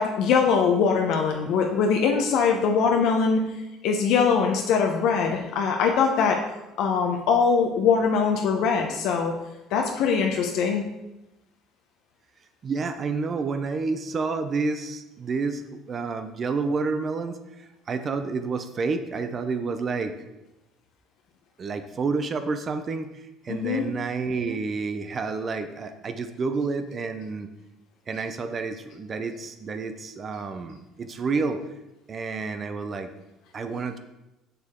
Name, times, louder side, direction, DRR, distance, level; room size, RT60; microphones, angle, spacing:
voice 1, 0.0-3.4 3.8-6.4 6.8-9.3 9.7-10.8 23.5-23.9, left 5 dB, 70° left, 2 dB, 0.8 m, -22 dB
voice 2, 12.6-20.1 21.6-27.5 28.1-31.6 32.1-33.1 33.5-34.0, right 4 dB, 35° right, 9 dB, 0.6 m, -29 dB
6.8 x 6.7 x 3.7 m, 0.96 s
cardioid pair, 115°, 0 cm